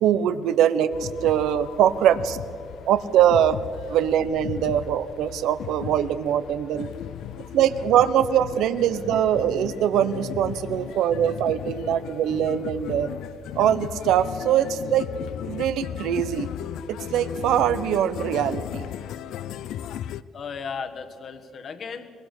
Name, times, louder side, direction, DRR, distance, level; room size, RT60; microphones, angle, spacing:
voice 1, 0.0-2.4 2.9-3.6 3.9-6.9 7.5-13.1 13.5-15.1 15.5-16.5 16.9-18.9, right 10 dB, 80° right, 12 dB, 0.9 m, -22 dB
sound 1, 0.9-20.2, left 11 dB, 70° left, 0.5 m, -36 dB
voice 2, 6.6-7.6 20.3-22.1, left 5 dB, 40° left, 9 dB, 1.4 m, -37 dB
22.5 x 21.5 x 6.5 m, 2.3 s
cardioid pair, 165°, 0 cm